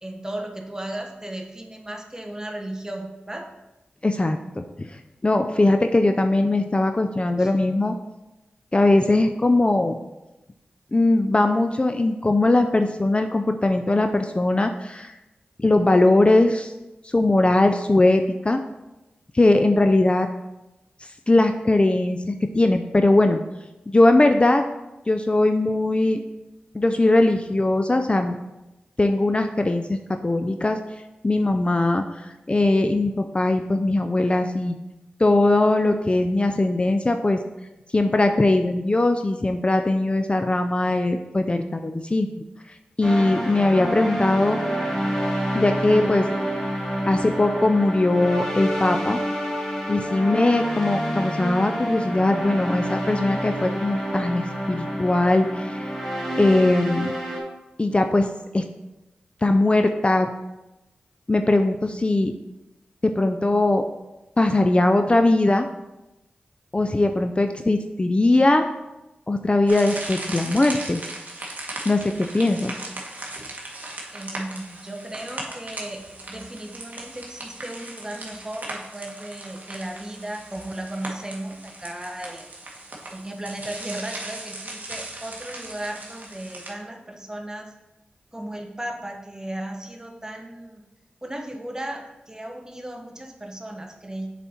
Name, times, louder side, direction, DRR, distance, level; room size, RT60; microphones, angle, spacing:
voice 1, 0.0-3.5 7.4-7.5 74.1-82.5 83.1-87.7 88.3-90.8 91.2-94.3, right 1 dB, 20° right, 3 dB, 1.1 m, -35 dB
voice 2, 4.0-5.0 5.2-7.9 8.7-9.9 10.9-15.1 15.6-16.7 17.0-18.6 19.3-20.3 21.3-23.4 23.9-24.6 25.1-26.2 26.7-28.4 29.0-30.8 31.2-34.8 35.2-37.4 37.9-42.4 43.0-44.6 45.5-46.3 47.0-49.2 49.9-55.9 56.4-57.1 57.8-58.3 58.5-58.6 59.4-60.3 61.3-62.3 63.0-63.8 64.4-65.7 66.7-68.7 69.3-71.0 71.9-72.7, left 2 dB, 30° left, 6 dB, 0.4 m, -20 dB
sound 1, 43.0-57.4, equal, 10° left, 2.3 m, -28 dB
sound 2, 69.7-86.7, right 2 dB, 50° right, 1.4 m, -38 dB
7.1 x 4.1 x 4.4 m, 1.0 s
cardioid pair, 50°, 4 cm